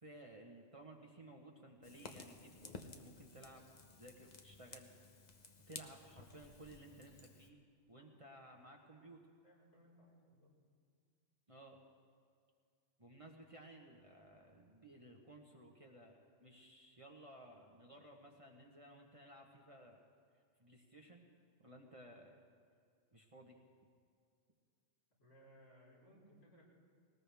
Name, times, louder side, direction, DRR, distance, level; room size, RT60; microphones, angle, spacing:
voice 1, 0.0-3.6 4.0-4.9 5.7-7.6 7.9-9.2 11.5-11.8 13.0-20.0 20.6-21.2 21.6-22.4 23.1-23.6, right 1 dB, 30° right, 1 dB, 1.2 m, -57 dB
Fire, 1.8-7.5, left 4 dB, 40° left, 0.9 m, -55 dB
voice 2, 9.4-10.5 25.2-26.6, equal, 75° left, -6 dB, 5.2 m, -64 dB
20.0 x 19.0 x 3.5 m, 2.2 s
omnidirectional pair, 1.3 m